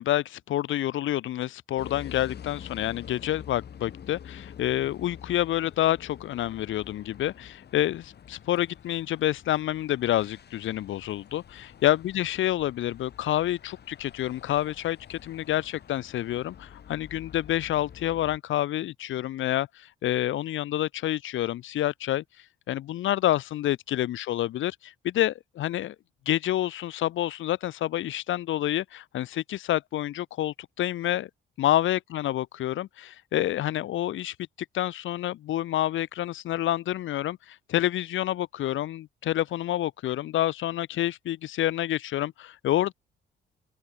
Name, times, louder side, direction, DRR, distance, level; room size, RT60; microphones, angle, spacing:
voice 1, 0.0-22.2 22.7-25.9 26.3-31.3 31.6-34.3 34.7-42.9, left 13 dB, 80° left, 2.5 m, -28 dB
sound 1, 1.8-18.4, left 8 dB, 55° left, 5.6 m, -47 dB
open air
cardioid pair, 90°, 20 cm